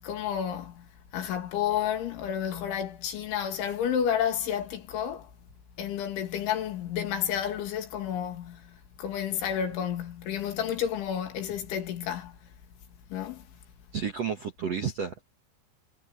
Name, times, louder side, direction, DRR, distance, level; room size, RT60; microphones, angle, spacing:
voice 1, 0.0-0.9 1.1-5.3 5.8-12.4 13.1-13.4, left 9 dB, 70° left, 4.9 m, -31 dB
voice 2, 13.9-15.2, right 6 dB, 75° right, 1.4 m, -31 dB
omnidirectional pair, 5.7 m